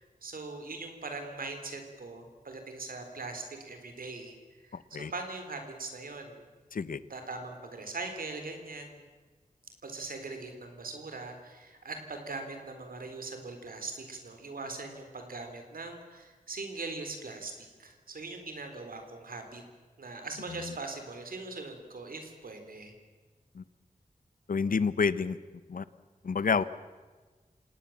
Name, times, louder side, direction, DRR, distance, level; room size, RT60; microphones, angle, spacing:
voice 1, 0.0-4.3 4.6-6.4 7.1-9.0 9.8-19.6 20.0-22.9, right 3 dB, 90° right, 6 dB, 3.9 m, -41 dB
voice 2, 24.5-25.4 25.7-25.8 26.2-26.6, left 5 dB, 75° left, 16 dB, 0.9 m, -28 dB
27.5 x 18.5 x 7.4 m, 1.4 s
wide cardioid pair, 100°, 14 cm